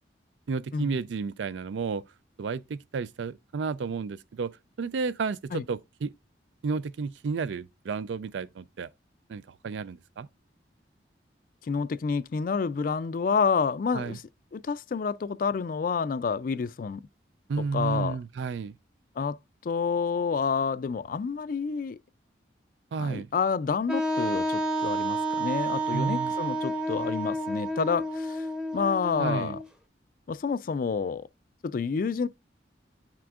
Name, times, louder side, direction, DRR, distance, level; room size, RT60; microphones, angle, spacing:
voice 1, 0.5-2.0 2.4-4.5 4.8-6.1 6.6-8.9 9.3-10.3 13.9-14.2 17.5-18.8 22.9-23.3 25.9-26.3 29.2-29.6, right 5 dB, 80° right, 0.4 m, -32 dB
voice 2, 11.6-14.2 14.5-17.0 17.7-18.2 19.2-19.4 19.6-22.0 23.0-28.5 28.7-29.6 30.3-31.3 31.6-32.3, left 5 dB, 50° left, 0.3 m, -29 dB
Wind instrument woodwind instrument, 23.9-29.6, right 1 dB, 5° right, 0.7 m, -30 dB
8.6 x 6.0 x 2.4 m
head